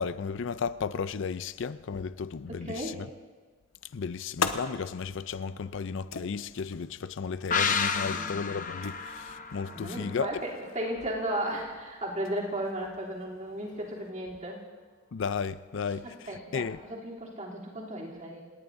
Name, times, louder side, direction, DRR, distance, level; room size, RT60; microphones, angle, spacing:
voice 1, 0.0-3.1 3.9-10.3 15.1-16.8, left 5 dB, 65° left, 0.5 m, -34 dB
voice 2, 2.5-3.0 8.0-8.4 9.6-14.6 16.0-18.4, right 1 dB, 40° right, 3.2 m, -35 dB
sound 1, 3.7-14.1, left 5 dB, 80° left, 1.0 m, -42 dB
sound 2, 7.5-11.0 11.3-11.4, left 5 dB, 40° left, 0.8 m, -32 dB
29.5 x 18.0 x 2.7 m
head